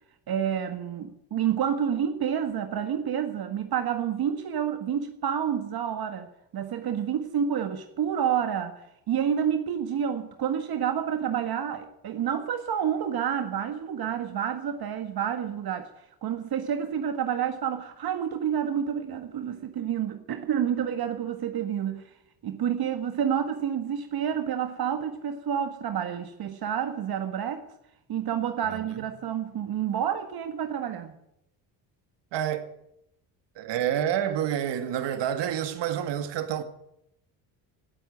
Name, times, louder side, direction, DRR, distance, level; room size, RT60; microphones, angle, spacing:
voice 1, 0.3-15.9 16.2-22.1 22.4-27.6 28.1-31.2, right 8 dB, 55° right, 1.6 m, -29 dB
voice 2, 28.7-29.1 32.3-32.7 33.6-36.6, right 10 dB, 75° right, 2.0 m, -28 dB
17.0 x 8.3 x 9.2 m
cardioid pair, 95°, 44 cm